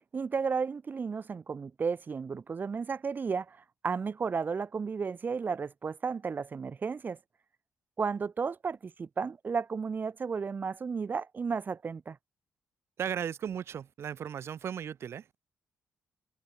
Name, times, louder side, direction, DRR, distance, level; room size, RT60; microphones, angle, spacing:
voice 1, 0.0-3.6 3.8-7.2 8.0-12.2, right 5 dB, 40° right, 0.4 m, -33 dB
voice 2, 13.0-15.2, right 8 dB, 65° right, 0.8 m, -36 dB
supercardioid pair, 55°, 5 cm